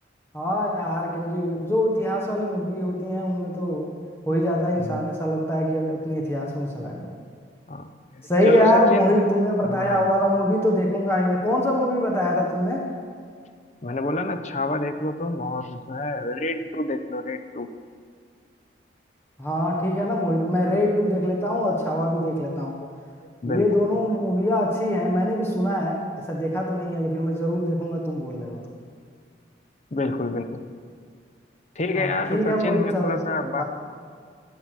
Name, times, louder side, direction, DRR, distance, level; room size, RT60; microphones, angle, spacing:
voice 1, 0.3-3.9 4.3-7.2 8.2-12.9 19.4-22.8 23.5-26.0 26.3-28.6 31.9-33.2 33.6-33.7, left 1 dB, 15° left, -1 dB, 1.3 m, -23 dB
voice 2, 7.7-9.2 9.6-10.1 13.8-17.7 23.2-23.6 29.9-30.6 31.8-33.6, left 2 dB, 40° left, 9 dB, 0.7 m, -28 dB
14.0 x 8.6 x 6.2 m, 2.1 s
head